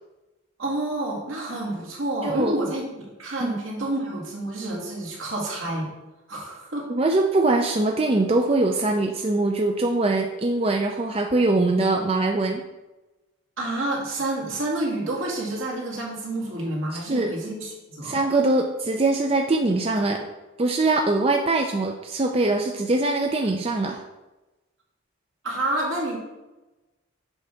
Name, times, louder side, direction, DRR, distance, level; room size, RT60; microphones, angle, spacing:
voice 1, 0.6-2.8 3.2-5.9 6.3-6.9 13.6-18.2 25.4-26.2, right 1 dB, 75° right, -3 dB, 2.2 m, -29 dB
voice 2, 2.2-2.6 3.4-3.6 6.9-12.6 16.9-17.3 18.0-20.3 20.6-24.0, right 2 dB, 30° right, 3 dB, 0.4 m, -22 dB
8.2 x 3.4 x 5.7 m, 1.1 s
head